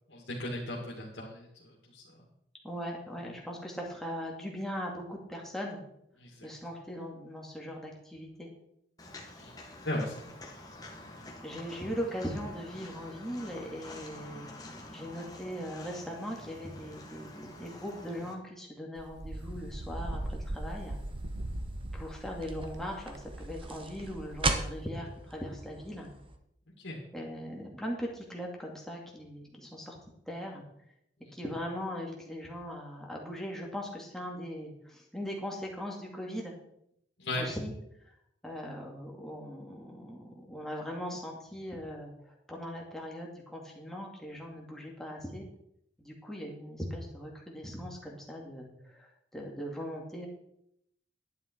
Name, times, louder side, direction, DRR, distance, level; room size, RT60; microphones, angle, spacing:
voice 1, 0.1-2.0 6.2-6.5 9.4-9.5 9.8-10.4 26.8-27.0 37.2-37.4, left 1 dB, 85° left, -3 dB, 2.3 m, -37 dB
voice 2, 2.6-5.8 6.4-8.5 11.4-21.0 21.9-26.1 27.1-30.0 30.3-30.6 31.3-36.5 37.3-37.7 38.4-45.5 46.0-50.3, equal, ahead, -2 dB, 2.4 m, -40 dB
Walk footsteps, 9.0-18.3, left 2 dB, 20° left, 1.6 m, -48 dB
Wind, 19.0-24.9, right 1 dB, 80° right, 1.2 m, -40 dB
sound 1, 19.3-26.4, right 3 dB, 30° right, 1.0 m, -39 dB
11.0 x 9.4 x 4.7 m, 0.75 s
head